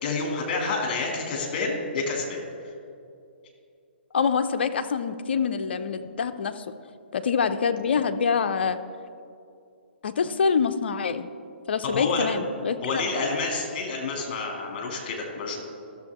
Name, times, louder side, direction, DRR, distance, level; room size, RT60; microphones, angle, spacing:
voice 1, 0.0-2.7 11.8-12.3 12.8-15.6, left 3 dB, 45° left, 0 dB, 2.5 m, -29 dB
voice 2, 4.1-6.6 7.1-8.8 10.0-11.3 11.7-12.8, left 6 dB, 65° left, 9 dB, 0.6 m, -25 dB
14.0 x 6.9 x 3.6 m, 2.5 s
figure-of-eight pair, 130°, 6 cm